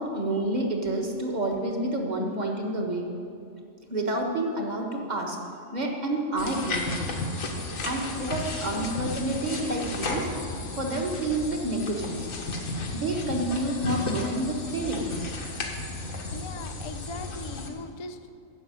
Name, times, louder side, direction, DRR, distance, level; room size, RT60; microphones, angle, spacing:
voice 1, 0.0-3.1 3.9-5.4 5.7-7.0 7.8-10.3 10.7-12.3 12.9-15.2, right 1 dB, 35° right, 1 dB, 1.5 m, -29 dB
sound 1, 6.4-17.7, left 2 dB, 85° left, 1.7 m, -33 dB
voice 2, 8.1-8.5 16.3-18.3, left 4 dB, 50° left, 7 dB, 0.3 m, -40 dB
11.5 x 6.8 x 8.9 m, 2.5 s
omnidirectional pair, 1.4 m